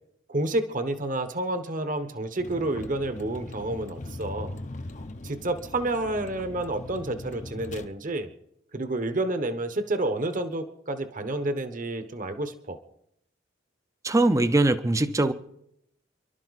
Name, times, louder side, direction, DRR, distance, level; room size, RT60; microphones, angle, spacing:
voice 1, 0.3-4.6 5.2-8.3 8.7-12.8, right 2 dB, 45° right, 1.1 m, -29 dB
Vehicle, 2.4-7.9, left 2 dB, 40° left, 0.8 m, -40 dB
voice 2, 14.0-15.3, right 2 dB, 15° right, 0.6 m, -21 dB
29.0 x 12.0 x 4.1 m
head